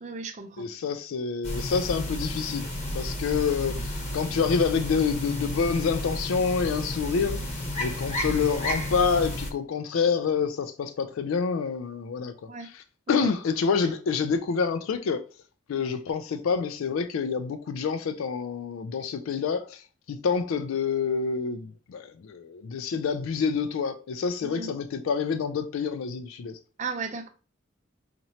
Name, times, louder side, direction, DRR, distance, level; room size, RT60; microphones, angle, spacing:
voice 1, 0.0-0.7 12.5-12.7 13.1-13.3 24.4-24.7 26.8-27.3, right 4 dB, 35° right, 0.5 m, -35 dB
voice 2, 0.6-2.7 2.9-15.2 15.7-26.6, left 5 dB, 85° left, 0.4 m, -27 dB
sound 1, 1.4-9.5, left 1 dB, 30° left, 0.9 m, -32 dB
4.2 x 3.0 x 2.7 m
head